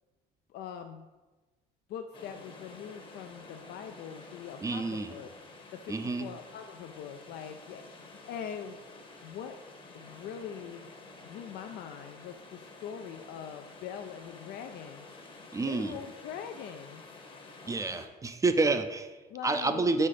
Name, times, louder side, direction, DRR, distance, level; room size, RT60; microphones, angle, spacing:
voice 1, 0.5-1.1 1.9-5.3 5.7-8.8 9.2-9.6 9.9-10.9 11.2-15.1 15.5-17.0 19.3-19.9, left 8 dB, 75° left, 6 dB, 0.4 m, -42 dB
sound 1, 2.1-18.1, left 3 dB, 30° left, 0.9 m, -50 dB
voice 2, 4.6-5.1 5.9-6.3 15.5-16.0 17.7-19.2 19.4-20.1, right 3 dB, 20° right, 9 dB, 0.4 m, -29 dB
5.3 x 4.2 x 4.8 m, 1.2 s
cardioid pair, 110°, 17 cm